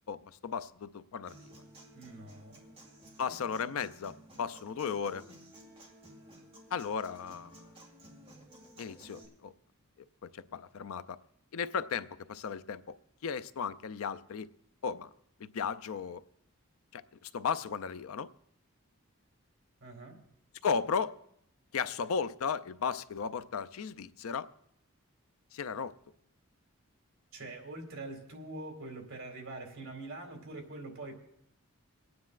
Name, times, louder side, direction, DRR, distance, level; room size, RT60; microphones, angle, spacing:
voice 1, 0.1-1.5 3.2-5.3 6.7-7.7 8.8-9.5 10.3-11.2 11.5-12.8 13.2-14.5 14.8-15.1 15.4-16.2 16.9-18.3 20.6-21.2 21.7-24.5 25.5-25.9, left 6 dB, 80° left, 0.4 m, -35 dB
Human voice / Acoustic guitar, 1.3-9.2, right 1 dB, 25° right, 2.1 m, -54 dB
voice 2, 1.9-2.8 19.8-20.2 27.3-31.2, right 2 dB, 65° right, 2.2 m, -44 dB
28.0 x 9.4 x 2.4 m
head